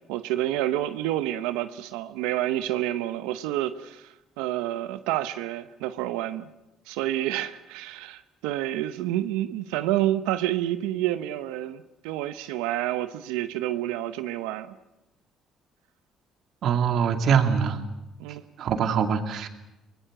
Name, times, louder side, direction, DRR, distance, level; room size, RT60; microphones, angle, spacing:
voice 1, 0.1-6.5 6.9-14.7 18.2-18.4 18.7-18.9, right 14 dB, 90° right, 0.9 m, -29 dB
voice 2, 16.6-17.8 18.6-19.5, right 7 dB, 65° right, 2.6 m, -23 dB
24.0 x 20.0 x 8.0 m
supercardioid pair, 75°, 0 cm